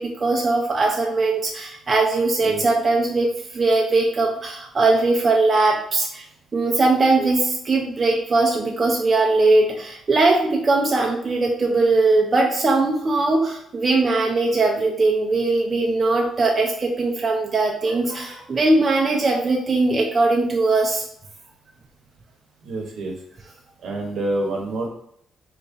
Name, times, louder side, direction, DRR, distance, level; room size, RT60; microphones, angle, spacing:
voice 1, 0.0-6.3 6.5-21.0, right 3 dB, 40° right, 0 dB, 0.5 m, -20 dB
voice 2, 22.6-23.1 23.8-24.9, right 2 dB, 70° right, 0 dB, 0.9 m, -27 dB
2.9 x 2.6 x 3.6 m, 0.72 s
cardioid pair, 75°, 0 cm